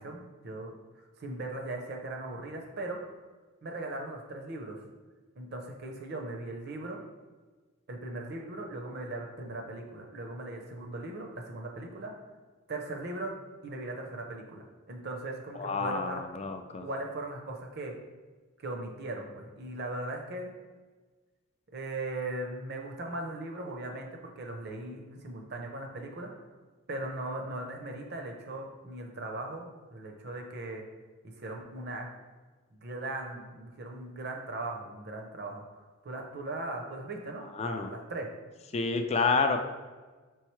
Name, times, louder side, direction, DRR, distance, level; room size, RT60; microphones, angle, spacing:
voice 1, 0.0-3.1 3.6-4.8 5.4-7.0 7.9-12.1 12.7-13.3 13.6-16.2 16.8-18.0 18.6-20.5 21.7-26.5 26.9-30.8 31.4-32.1 32.7-38.3, right 2 dB, 50° right, 2 dB, 0.6 m, -39 dB
voice 2, 15.6-16.8 37.6-37.9 38.7-39.6, left 4 dB, 30° left, 7 dB, 0.3 m, -29 dB
4.6 x 3.5 x 3.1 m, 1.3 s
head